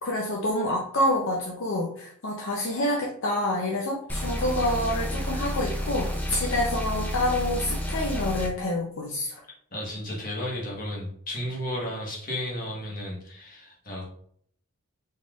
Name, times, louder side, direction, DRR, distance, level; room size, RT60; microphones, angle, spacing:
voice 1, 0.0-9.4, left 1 dB, 60° left, -2 dB, 0.6 m, -27 dB
sound 1, 4.1-8.5, equal, 10° left, 0.4 m, -30 dB
voice 2, 9.7-14.1, left 1 dB, 40° left, -3 dB, 1.3 m, -33 dB
4.2 x 3.6 x 2.4 m, 0.62 s
head